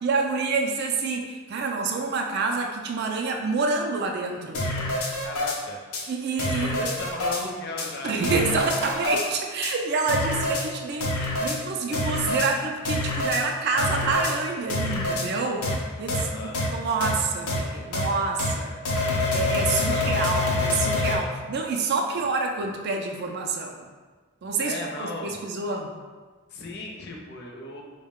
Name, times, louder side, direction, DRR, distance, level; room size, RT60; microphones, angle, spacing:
voice 1, 0.0-4.7 6.1-6.9 8.0-18.8 19.3-23.9 24.4-25.9, right 4 dB, 45° right, 2 dB, 0.3 m, -27 dB
sound 1, 4.5-5.6 5.9-6.0 6.4-7.4 7.8-7.9 8.2-9.3 9.6-9.7 10.1-10.6 11.0-11.6 11.9-12.5 12.8-13.4 13.8-14.3 14.7-15.3 15.6-15.8 16.1-16.2 16.5-16.7 17.0-17.1 17.5-17.6 17.9-18.1 18.4-18.5 18.8-21.2, left 2 dB, 80° left, 0.7 m, -26 dB
voice 2, 5.2-5.8 6.5-8.6 16.1-16.5 19.7-20.1 22.2-22.3 24.6-25.4 26.5-27.8, left 2 dB, 45° left, 0 dB, 0.5 m, -36 dB
4.4 x 2.1 x 3.6 m, 1.4 s
head